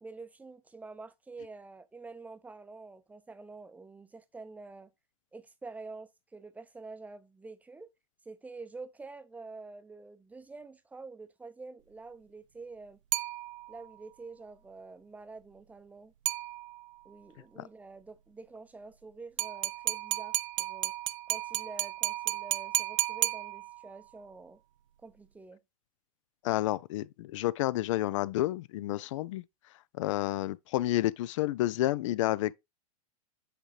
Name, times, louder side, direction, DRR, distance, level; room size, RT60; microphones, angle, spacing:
voice 1, 0.0-4.9 5.3-7.9 8.3-13.0 13.7-16.1 17.0-20.9 21.3-24.6 25.0-25.6, right 3 dB, 10° right, 0.6 m, -47 dB
sound 1, 13.1-13.9 16.3-17.0 19.4-24.0, right 16 dB, 55° right, 0.5 m, -33 dB
voice 2, 26.4-29.4 29.9-32.5, left 15 dB, 55° left, 0.4 m, -30 dB
8.0 x 3.7 x 3.2 m
hypercardioid pair, 100°, 19 cm